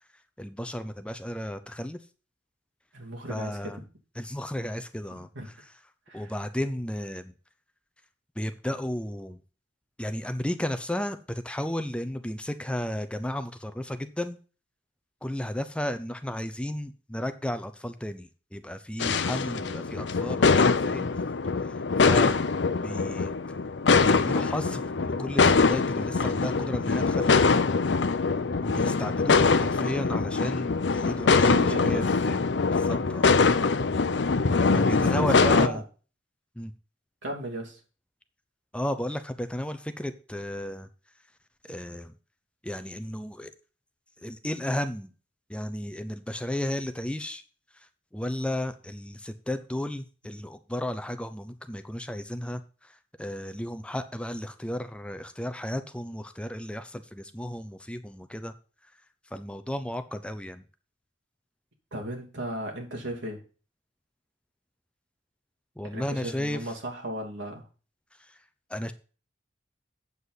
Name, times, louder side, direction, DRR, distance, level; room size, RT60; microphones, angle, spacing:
voice 1, 0.4-2.0 3.3-3.8 4.2-5.5 6.1-7.3 8.4-9.4 10.0-14.4 15.2-21.1 21.6-22.4 22.8-23.3 24.0-27.4 28.6-33.3 34.7-35.8 36.6-36.7 38.7-40.9 41.6-42.1 42.6-43.5 44.2-45.1 45.5-47.4 47.7-47.9 48.1-58.5 59.3-60.6 65.8-66.6 68.2-68.4 68.7-68.9, left 1 dB, 5° left, 10 dB, 0.6 m, -34 dB
voice 2, 2.9-3.8 5.1-5.5 6.1-6.3 31.5-32.2 33.2-33.4 35.0-35.8 37.2-37.8 61.9-63.4 65.9-67.7, right 1 dB, 85° right, 0 dB, 2.8 m, -36 dB
sound 1, 19.0-35.7, left 4 dB, 70° left, 0.6 m, -23 dB
8.1 x 7.4 x 4.1 m, 0.35 s
head